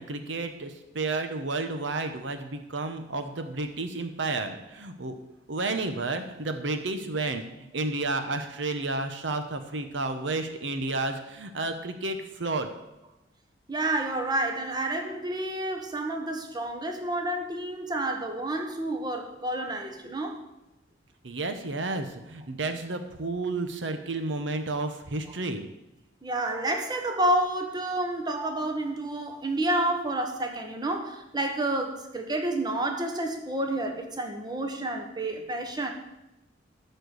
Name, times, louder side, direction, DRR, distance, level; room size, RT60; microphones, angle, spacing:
voice 1, 0.0-5.1 5.5-12.7 21.2-25.7, right 3 dB, 70° right, 7 dB, 0.9 m, -31 dB
voice 2, 13.7-20.4 26.2-35.9, right 1 dB, 20° right, 4 dB, 1.2 m, -29 dB
13.0 x 4.5 x 8.1 m, 0.93 s
head